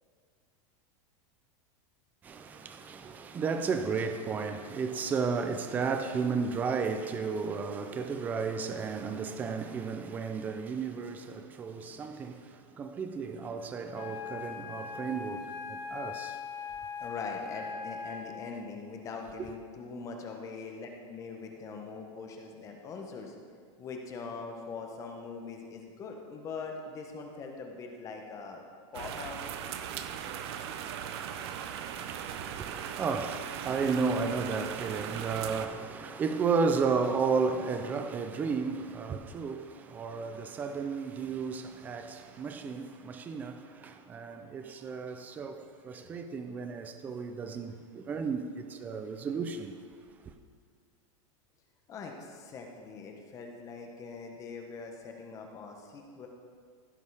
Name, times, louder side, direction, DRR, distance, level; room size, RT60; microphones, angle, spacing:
voice 1, 2.2-16.4 31.9-49.7, right 5 dB, 10° right, 0.3 m, -33 dB
voice 2, 11.8-12.7 17.0-23.3 23.8-28.6 28.9-29.4 51.9-56.3, left 4 dB, 20° left, 0.9 m, -42 dB
Wind instrument woodwind instrument, 13.9-18.5, left 5 dB, 45° left, 1.3 m, -40 dB
sound 1, 28.9-35.7, right 9 dB, 55° right, 0.6 m, -39 dB
15.5 x 5.3 x 4.7 m
supercardioid pair, 170°, 17 cm